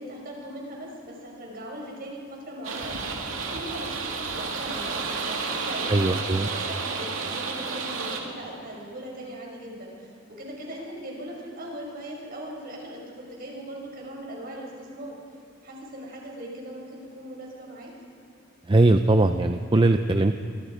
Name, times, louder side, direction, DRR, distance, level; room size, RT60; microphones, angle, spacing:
voice 1, 0.0-15.2 15.6-17.9, right 1 dB, 50° right, -1 dB, 5.9 m, -39 dB
sound 1, 2.6-8.2, right 4 dB, 85° right, 2.6 m, -31 dB
voice 2, 5.9-6.5 18.7-20.3, right 2 dB, 25° right, 7 dB, 0.6 m, -20 dB
25.0 x 23.0 x 5.1 m, 2.7 s
head